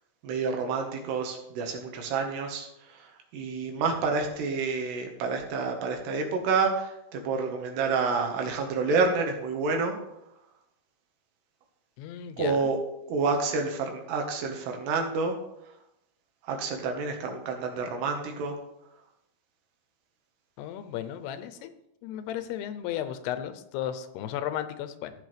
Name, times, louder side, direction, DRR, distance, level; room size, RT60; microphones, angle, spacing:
voice 1, 0.2-3.1 3.3-10.0 12.4-12.8 13.1-15.4 16.4-18.6, right 4 dB, 85° right, 3 dB, 3.6 m, -28 dB
voice 2, 12.0-12.7 20.6-21.7 22.0-25.1, left 10 dB, 90° left, 10 dB, 2.8 m, -34 dB
15.0 x 8.1 x 3.4 m, 0.84 s
omnidirectional pair, 4.6 m